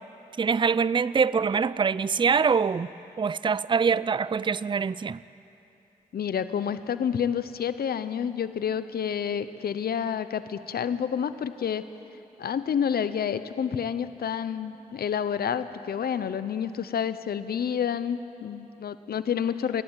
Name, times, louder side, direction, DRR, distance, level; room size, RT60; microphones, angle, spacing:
voice 1, 0.4-2.9 3.2-5.2, right 6 dB, 30° right, 0.4 m, -24 dB
voice 2, 6.1-11.9 12.4-19.8, left 8 dB, 70° left, 0.8 m, -29 dB
29.5 x 11.5 x 9.1 m
cardioid pair, 50°, 17 cm